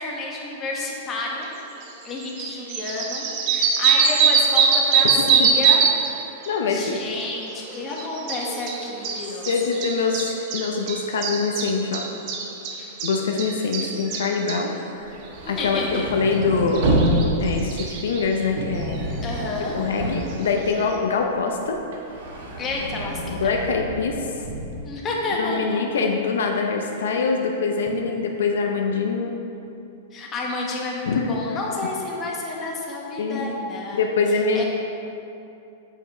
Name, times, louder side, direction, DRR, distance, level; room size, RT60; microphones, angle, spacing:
voice 1, 0.0-1.5 2.0-5.8 6.7-9.5 12.7-12.9 15.4-16.2 19.2-19.8 22.6-23.5 24.8-25.8 30.1-34.0 34.5-34.6, left 2 dB, 25° left, -3 dB, 1.5 m, -30 dB
sound 1, 1.8-1.9 2.2-6.1 6.4-14.6 16.4-16.5 16.7-18.2 19.0-19.1 20.9-21.0, right 6 dB, 45° right, 1.0 m, -22 dB
voice 2, 5.0-5.5 6.5-7.0 9.5-12.1 13.0-15.1 15.5-17.0 17.4-19.1 19.7-21.8 23.3-24.3 25.4-29.3 31.1-31.6 33.2-33.5 33.9-34.6, left 4 dB, 85° left, 2 dB, 0.7 m, -24 dB
sound 2, 15.0-21.1 21.5-24.8, right 1 dB, 70° right, 1.6 m, -28 dB
7.5 x 5.5 x 4.9 m, 2.8 s
hypercardioid pair, 135°, 0 cm